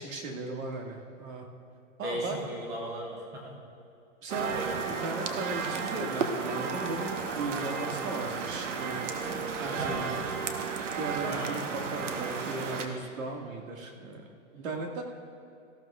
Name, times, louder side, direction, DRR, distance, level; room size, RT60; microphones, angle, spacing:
voice 1, 0.0-1.5 2.0-2.5 4.2-4.6 4.9-9.0 9.2-10.2 11.0-15.0, right 2 dB, 90° right, 1 dB, 2.1 m, -37 dB
voice 2, 2.0-3.5 4.5-4.7 8.0-8.2 9.5-10.2 11.2-11.5, right 1 dB, 10° right, -1 dB, 0.8 m, -37 dB
sound 1, 4.3-12.9, right 5 dB, 65° right, 1.2 m, -33 dB
18.5 x 14.0 x 2.5 m, 2.7 s
hypercardioid pair, 175°, 39 cm